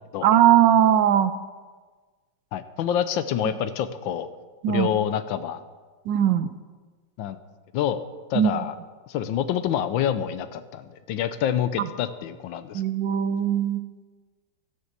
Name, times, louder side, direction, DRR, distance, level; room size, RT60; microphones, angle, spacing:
voice 1, 0.2-1.3 4.6-4.9 6.1-6.5 8.3-8.6 11.8-11.9 12.7-13.8, right 10 dB, 75° right, 12 dB, 1.2 m, -20 dB
voice 2, 2.5-4.3 4.7-5.6 7.2-7.4 7.7-8.0 8.3-8.7 9.1-12.8, left 9 dB, 75° left, 12 dB, 1.3 m, -27 dB
12.0 x 6.6 x 7.3 m, 1.4 s
omnidirectional pair, 2.2 m